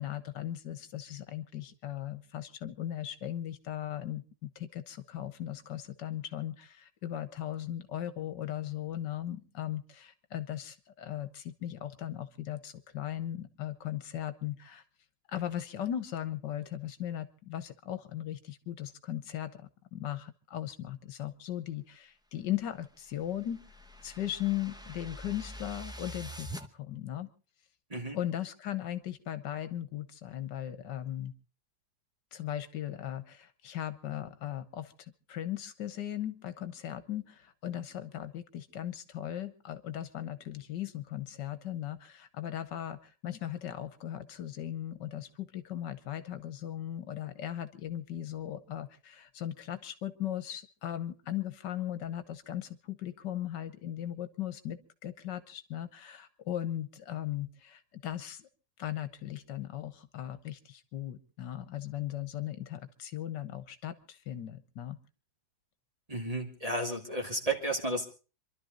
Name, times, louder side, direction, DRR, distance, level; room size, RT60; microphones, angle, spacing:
voice 1, 0.0-14.8 15.3-23.6 24.0-27.3 28.1-31.3 32.3-58.5 58.8-65.0, left 12 dB, 75° left, 12 dB, 1.6 m, -38 dB
sound 1, 22.6-26.7, equal, 5° right, 0.5 m, -45 dB
voice 2, 66.1-68.0, right 2 dB, 20° right, 2 dB, 2.4 m, -33 dB
27.0 x 12.0 x 3.8 m, 0.34 s
omnidirectional pair, 1.9 m